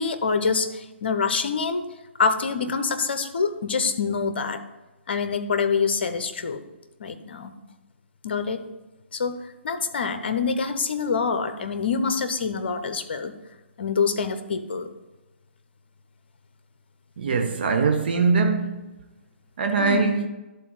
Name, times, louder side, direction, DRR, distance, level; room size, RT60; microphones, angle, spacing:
voice 1, 0.0-1.9 2.2-4.6 5.1-6.6 7.0-7.5 8.2-8.6 9.1-9.4 9.6-13.3 13.8-14.9 19.8-20.2, left 5 dB, 55° left, 0.8 m, -26 dB
voice 2, 17.2-18.8 19.6-20.3, right 4 dB, 50° right, 0.8 m, -22 dB
11.0 x 4.1 x 5.3 m
figure-of-eight pair, 125°, 7 cm